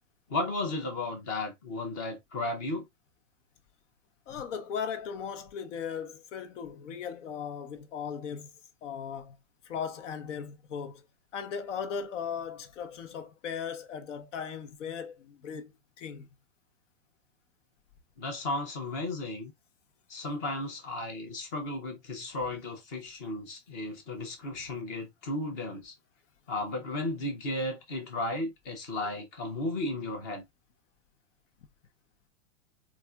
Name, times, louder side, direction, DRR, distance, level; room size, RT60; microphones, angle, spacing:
voice 1, 0.3-2.9 18.2-19.5 20.1-25.9 26.5-30.4, left 2 dB, 15° left, 0.4 m, -34 dB
voice 2, 4.3-8.5 8.8-9.4 9.6-11.0 11.3-16.3, left 7 dB, 70° left, 0.8 m, -37 dB
4.1 x 2.4 x 2.2 m
supercardioid pair, 165°, 38 cm